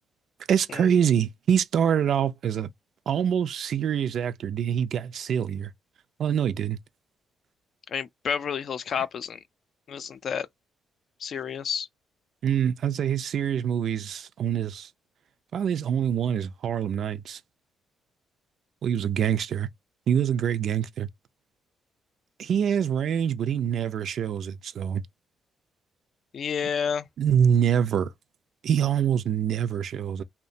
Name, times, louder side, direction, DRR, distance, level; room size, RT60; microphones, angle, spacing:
voice 1, 0.5-2.7 3.1-5.7 6.2-6.8 12.4-14.9 15.5-17.4 18.8-19.7 20.1-21.1 22.4-25.0 27.2-28.1 28.6-30.2, right 8 dB, 65° right, 0.3 m, -25 dB
voice 2, 7.9-9.4 9.9-10.5 11.2-11.9 26.3-27.0, left 7 dB, 55° left, 0.4 m, -30 dB
2.8 x 2.1 x 2.5 m
cardioid pair, 90°, 0 cm